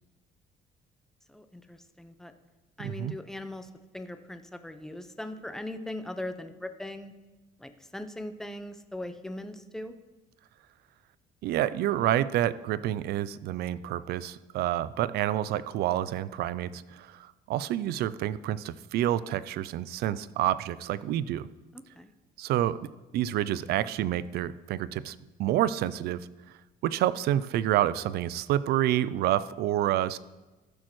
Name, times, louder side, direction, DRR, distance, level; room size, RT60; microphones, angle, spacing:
voice 1, 1.3-2.3 2.8-7.1 7.6-9.9 21.7-22.1, left 1 dB, 5° left, 8 dB, 0.6 m, -40 dB
voice 2, 2.8-3.2 11.4-21.5 22.4-22.8 23.1-26.3 26.8-30.2, right 12 dB, 70° right, 17 dB, 0.4 m, -28 dB
14.5 x 6.3 x 3.1 m, 1.1 s
cardioid pair, 110°, 17 cm